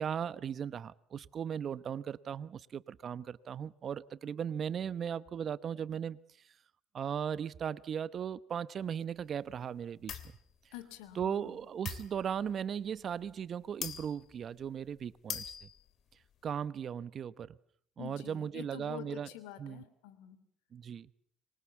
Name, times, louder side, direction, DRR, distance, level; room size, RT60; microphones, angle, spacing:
voice 1, 0.0-6.2 6.9-10.1 11.2-15.7 16.4-17.6 18.0-19.3 19.6-19.8 20.7-21.1, right 8 dB, 45° right, 18 dB, 0.9 m, -37 dB
sound 1, 10.1-10.4 11.9-12.5 13.3-13.4 13.8-14.3 14.6-14.7 15.1-15.9, left 9 dB, 55° left, 2.8 m, -41 dB
voice 2, 10.7-11.6 18.0-20.4, left 12 dB, 75° left, 13 dB, 2.9 m, -47 dB
25.5 x 23.0 x 7.2 m, 0.63 s
hypercardioid pair, 65°, 0 cm